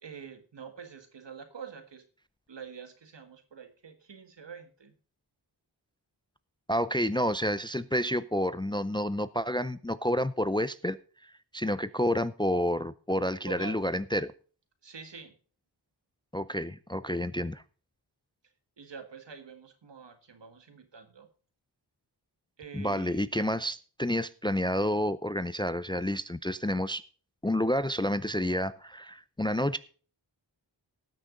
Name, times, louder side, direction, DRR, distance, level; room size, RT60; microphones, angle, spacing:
voice 1, 0.0-2.0 2.5-4.9 13.5-13.8 14.8-15.3 18.8-21.3 22.6-23.2, right 6 dB, 75° right, 7 dB, 1.8 m, -46 dB
voice 2, 6.7-14.3 16.3-17.6 22.7-27.0 27.4-29.8, equal, 10° left, 15 dB, 0.4 m, -29 dB
19.0 x 6.3 x 3.9 m, 0.40 s
wide cardioid pair, 75°, 43 cm